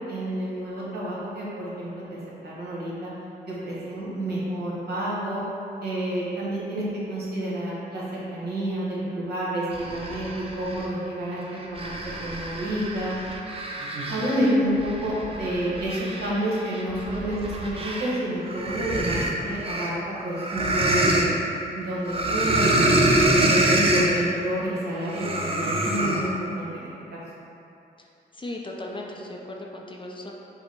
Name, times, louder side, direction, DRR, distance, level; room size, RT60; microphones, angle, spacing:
voice 1, 0.1-3.1 3.5-5.4 5.8-13.1 14.1-21.4 21.7-22.7 23.3-27.2, right 1 dB, 65° right, -6 dB, 1.3 m, -29 dB
sound 1, 9.7-10.9 11.4-18.2 18.5-21.3 22.1-24.2 25.1-26.3, right 1 dB, 30° right, 0.6 m, -25 dB
voice 2, 28.3-30.3, left 1 dB, 30° left, -1 dB, 0.5 m, -36 dB
5.5 x 2.1 x 4.4 m, 2.7 s
cardioid pair, 65°, 18 cm